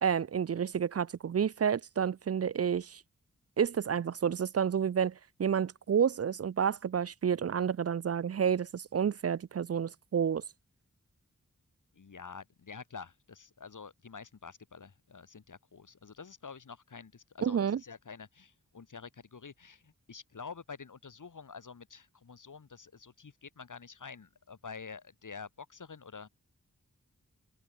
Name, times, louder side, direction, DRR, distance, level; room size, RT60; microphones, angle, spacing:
voice 1, 0.0-3.0 3.6-5.1 5.4-10.4 17.4-17.8, right 7 dB, 50° right, 0.5 m, -30 dB
voice 2, 11.9-26.3, left 5 dB, 75° left, 6.1 m, -48 dB
wide cardioid pair, 65°, 31 cm